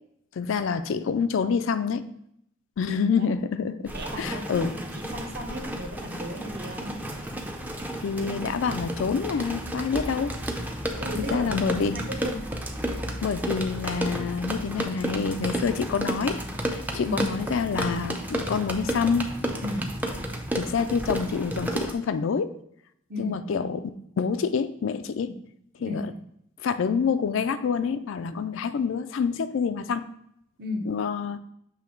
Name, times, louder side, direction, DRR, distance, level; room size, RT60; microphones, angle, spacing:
voice 1, 0.4-2.0 2.8-4.7 8.0-10.3 11.3-12.0 13.2-16.4 16.7-19.3 20.5-22.5 23.2-25.3 25.8-26.0 26.6-30.0 30.9-31.4, left 5 dB, 65° left, 11 dB, 0.3 m, -27 dB
sound 1, 3.9-21.9, right 1 dB, 10° right, 0.5 m, -32 dB
voice 2, 3.9-7.0 11.0-12.5 17.0-17.3 19.6-19.9 23.1-23.4 25.3-25.4 25.8-26.0 30.6-30.9, left 1 dB, 50° right, 3 dB, 0.8 m, -35 dB
7.1 x 3.1 x 4.4 m, 0.74 s
head